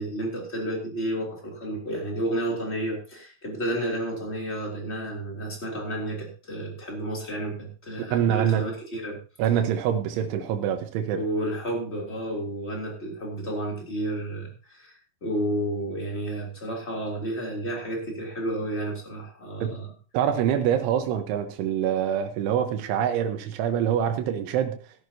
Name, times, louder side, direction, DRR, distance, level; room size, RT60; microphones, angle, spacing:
voice 1, 0.0-9.2 11.1-19.9, right 1 dB, 15° left, 2.5 m, -31 dB
voice 2, 8.1-8.6 9.4-11.2 19.6-19.8 20.1-24.8, right 9 dB, 80° right, 3.6 m, -25 dB
16.5 x 11.0 x 2.8 m
omnidirectional pair, 5.4 m